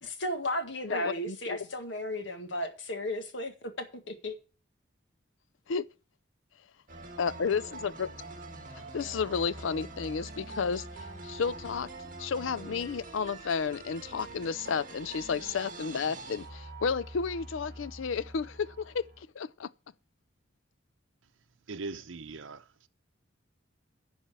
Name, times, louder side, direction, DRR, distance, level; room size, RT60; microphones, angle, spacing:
voice 1, 0.0-4.4, left 1 dB, 70° left, 1.8 m, -34 dB
voice 2, 0.9-1.6 5.7-5.8 7.2-8.1 8.9-10.8 11.2-11.9 12.2-19.1 19.4-19.7, left 5 dB, 85° left, 0.5 m, -32 dB
sound 1, 6.9-19.2, right 2 dB, 45° right, 2.0 m, -45 dB
voice 3, 21.7-22.6, right 3 dB, 85° right, 0.8 m, -39 dB
11.0 x 4.4 x 7.4 m
head